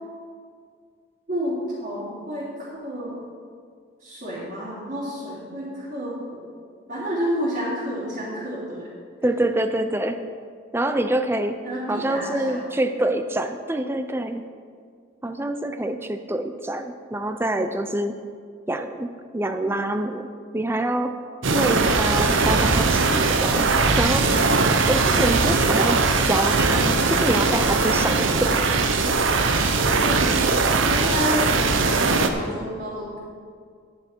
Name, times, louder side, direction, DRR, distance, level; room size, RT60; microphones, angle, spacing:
voice 1, 1.3-3.2 4.0-6.4 6.9-8.9 11.6-12.6 29.8-30.5 30.8-33.2, equal, 45° right, -12 dB, 3.2 m, -30 dB
voice 2, 9.2-10.2 10.7-11.6 11.9-14.4 15.2-18.2 18.7-21.1 21.5-28.8, right 1 dB, 10° right, 8 dB, 0.4 m, -26 dB
sound 1, 21.4-32.3, right 3 dB, 75° right, 0.8 m, -20 dB
10.5 x 10.5 x 4.5 m, 2.1 s
head